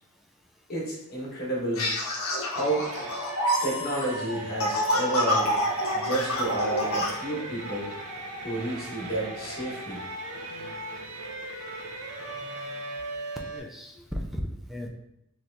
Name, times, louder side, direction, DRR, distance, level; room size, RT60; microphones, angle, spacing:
voice 1, 0.7-1.9 2.5-2.9 3.6-5.6 5.9-7.9 8.4-10.0, right 1 dB, 45° left, -4 dB, 1.4 m, -31 dB
sound 1, 1.8-7.1, equal, 70° left, 0.8 m, -28 dB
sound 2, 2.5-13.6, right 2 dB, 90° right, 0.6 m, -38 dB
voice 2, 13.5-14.9, equal, ahead, 0 dB, 0.3 m, -35 dB
4.2 x 3.2 x 2.6 m, 0.82 s
head